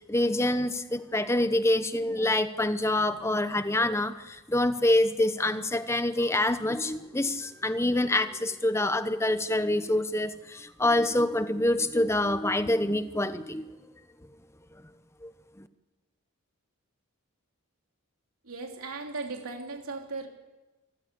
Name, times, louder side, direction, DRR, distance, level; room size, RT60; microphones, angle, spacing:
voice 1, 0.1-13.7 15.2-15.3 15.6-15.7, left 1 dB, 10° left, 11 dB, 0.9 m, -26 dB
voice 2, 18.5-20.3, right 3 dB, 75° right, 3 dB, 3.1 m, -37 dB
26.0 x 15.0 x 8.3 m, 1.1 s
head